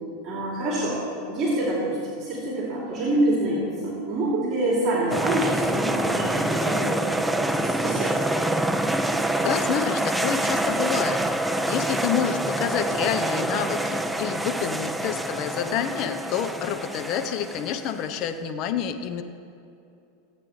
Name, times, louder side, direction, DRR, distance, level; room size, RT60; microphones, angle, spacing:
voice 1, 0.2-1.0 1.3-8.4, right 1 dB, 40° right, -5 dB, 2.9 m, -26 dB
sound 1, 5.1-18.2, right 1 dB, 5° right, 0.5 m, -26 dB
voice 2, 9.1-19.2, left 9 dB, 50° left, 8 dB, 0.8 m, -28 dB
18.0 x 8.7 x 3.3 m, 2.7 s
hypercardioid pair, 105°, 0 cm